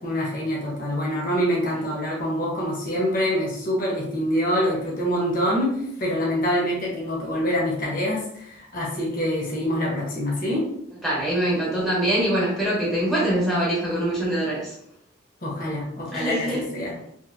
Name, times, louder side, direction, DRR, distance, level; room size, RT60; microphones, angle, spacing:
voice 1, 0.0-10.7 15.4-17.0, equal, 45° left, -3 dB, 0.8 m, -25 dB
voice 2, 11.0-14.7 16.1-16.6, right 1 dB, ahead, -6 dB, 0.7 m, -23 dB
2.9 x 2.6 x 2.5 m, 0.75 s
head